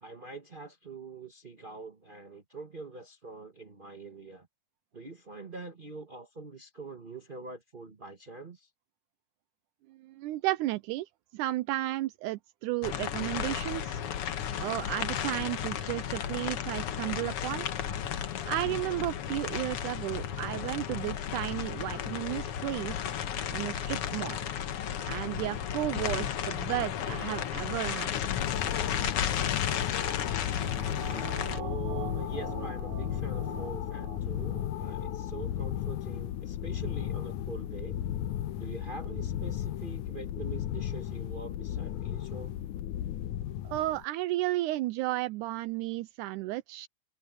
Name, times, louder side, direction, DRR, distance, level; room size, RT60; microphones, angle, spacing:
voice 1, 0.0-4.5 4.9-8.7 24.6-24.8 31.6-38.0 38.6-42.5, right 3 dB, 30° right, 1.0 m, -44 dB
voice 2, 9.9-14.0 14.6-17.7 18.5-23.1 23.5-24.4 25.0-28.2 43.6-46.9, right 17 dB, 85° right, 2.0 m, -33 dB
sound 1, 12.8-31.6, left 9 dB, 60° left, 1.7 m, -34 dB
sound 2, 28.0-44.0, left 11 dB, 75° left, 2.3 m, -35 dB
sound 3, 29.9-34.7 35.0-35.1, right 9 dB, 65° right, 1.5 m, -44 dB
omnidirectional pair, 3.6 m